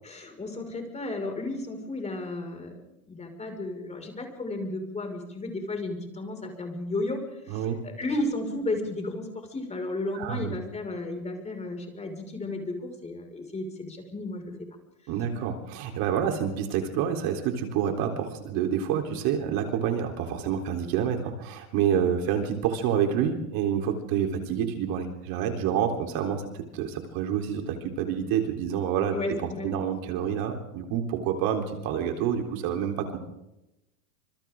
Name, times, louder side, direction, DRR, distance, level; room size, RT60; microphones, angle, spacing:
voice 1, 0.0-2.8 3.1-7.2 7.5-14.5 29.1-29.7, left 2 dB, 15° left, 3 dB, 5.8 m, -33 dB
voice 2, 7.5-7.8 10.1-10.6 15.1-26.5 26.7-29.2 29.6-33.2, right 8 dB, 50° right, 3 dB, 3.8 m, -28 dB
29.5 x 26.5 x 3.8 m, 0.91 s
supercardioid pair, 135°, 44 cm